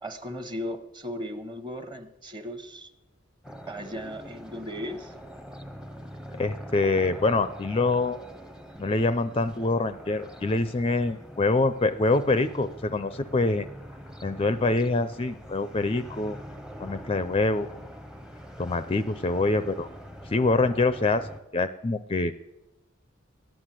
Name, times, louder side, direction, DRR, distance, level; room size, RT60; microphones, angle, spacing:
voice 1, 0.0-2.9 3.7-5.1, equal, 25° right, 9 dB, 1.1 m, -36 dB
sound 1, 3.4-21.4, equal, 5° right, 0.7 m, -44 dB
voice 2, 6.3-8.2 8.8-13.7 14.2-16.4 16.8-17.8 18.6-19.9 20.3-21.3 21.5-22.3, left 3 dB, 30° left, 12 dB, 0.5 m, -25 dB
13.5 x 10.0 x 7.6 m, 0.93 s
head